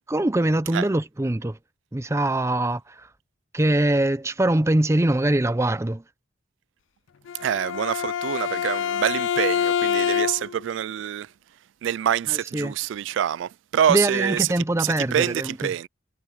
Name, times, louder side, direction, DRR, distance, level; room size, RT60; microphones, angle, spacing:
voice 1, 0.1-1.6 1.9-3.1 3.5-6.0 12.3-12.7 13.9-15.7, right 1 dB, 15° right, 0.6 m, -23 dB
Bowed string instrument, 7.3-10.7, left 8 dB, 85° left, 0.4 m, -26 dB
voice 2, 7.4-11.3 11.8-14.4 14.8-15.9, right 10 dB, 80° right, 0.3 m, -26 dB
head